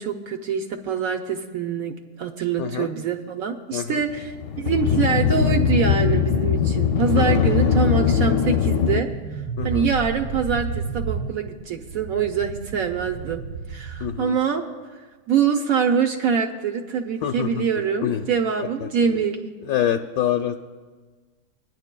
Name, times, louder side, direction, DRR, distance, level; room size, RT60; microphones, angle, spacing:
voice 1, 0.0-9.1 9.6-13.4 13.7-14.6 15.3-19.5, right 6 dB, 65° right, 3 dB, 1.0 m, -24 dB
voice 2, 2.6-2.9 3.7-4.0 7.1-7.6 9.6-9.9 14.0-14.4 17.2-17.6 18.0-18.3 18.8-19.2 19.6-20.6, left 10 dB, 70° left, 6 dB, 0.9 m, -26 dB
sound 1, 4.0-9.0, left 8 dB, 85° left, 1.3 m, -21 dB
sound 2, 5.3-14.2, right 6 dB, 80° right, 1.2 m, -33 dB
24.5 x 10.5 x 2.2 m, 1.4 s
omnidirectional pair, 1.8 m